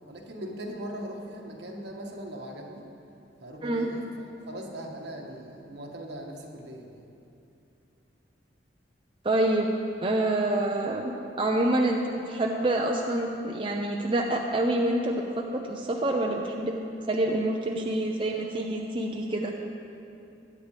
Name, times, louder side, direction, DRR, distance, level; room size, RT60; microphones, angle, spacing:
voice 1, 0.0-2.9 3.4-7.0, right 1 dB, 70° right, 0 dB, 1.6 m, -40 dB
voice 2, 9.2-9.7 10.0-11.1 11.4-16.8 17.1-19.5, right 1 dB, 30° right, 0 dB, 0.7 m, -27 dB
21.5 x 8.9 x 3.4 m, 2.7 s
head